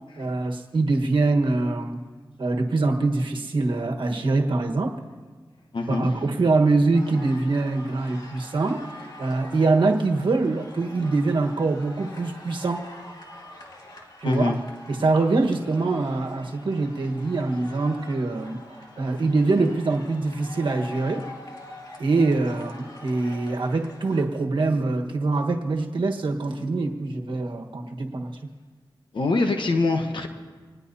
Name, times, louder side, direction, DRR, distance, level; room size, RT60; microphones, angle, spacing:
voice 1, 0.2-2.0 2.4-5.0 5.9-8.8 9.2-12.8 14.2-14.5 14.9-18.6 19.0-21.3 22.0-28.5, right 3 dB, 80° right, 2 dB, 1.4 m, -24 dB
voice 2, 5.7-6.1 8.4-8.5 14.2-14.6 29.1-30.3, left 3 dB, 75° left, 5 dB, 1.2 m, -24 dB
sound 1, 6.9-24.2, left 1 dB, 55° left, 2.4 m, -44 dB
26.0 x 19.5 x 2.8 m, 1.4 s
wide cardioid pair, 80°, 8 cm